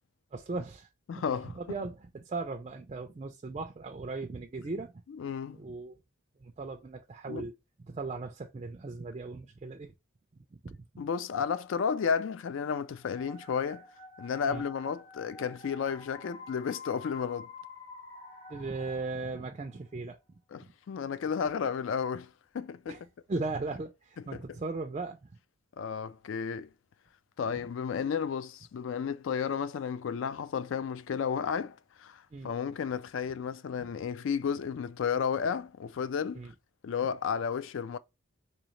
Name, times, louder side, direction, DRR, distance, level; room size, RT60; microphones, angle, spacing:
voice 1, 0.3-4.9 5.5-6.0 6.4-7.5 7.9-9.9 10.3-10.8 14.5-14.6 18.5-20.2 20.6-20.7 22.9-23.0 23.3-25.4 32.3-32.5 33.8-33.9 36.4-36.5, right 3 dB, 30° right, 0.3 m, -38 dB
voice 2, 1.1-1.6 5.1-5.6 7.3-7.4 11.0-13.8 14.2-17.5 20.5-22.3 22.5-23.0 25.8-26.7 27.4-36.5 36.8-38.0, left 6 dB, 65° left, 0.3 m, -32 dB
sound 1, 13.0-19.8, left 4 dB, 20° left, 0.8 m, -49 dB
3.9 x 2.7 x 3.1 m
head